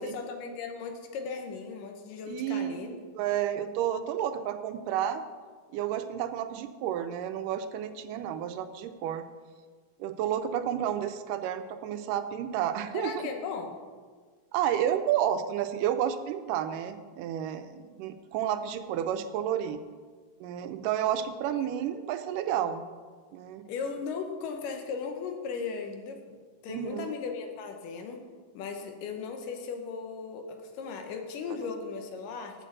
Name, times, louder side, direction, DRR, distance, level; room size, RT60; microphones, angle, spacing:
voice 1, 0.0-2.9 12.9-13.8 21.5-21.7 23.7-26.4 26.6-28.2 28.5-32.7, left 5 dB, 90° left, 4 dB, 2.7 m, -37 dB
voice 2, 2.3-5.3 5.7-9.2 10.0-13.2 14.5-19.8 20.4-22.8 23.3-23.7 26.7-27.1, right 10 dB, 90° right, 10 dB, 2.2 m, -31 dB
7.6 x 6.3 x 7.8 m, 1.5 s
omnidirectional pair, 3.7 m